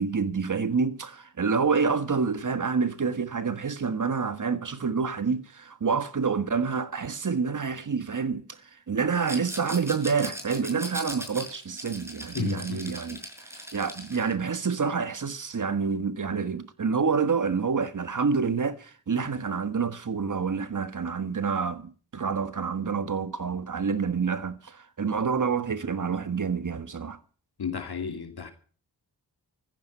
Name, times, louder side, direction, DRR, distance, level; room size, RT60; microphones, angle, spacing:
voice 1, 0.0-8.6 8.9-27.2, right 5 dB, 50° right, 1.6 m, -28 dB
Rattle, 9.2-14.3, equal, 5° right, 5.7 m, -39 dB
voice 2, 12.3-12.8 27.6-28.5, left 6 dB, 65° left, 2.7 m, -32 dB
15.0 x 14.5 x 5.6 m
cardioid pair, 65°, 41 cm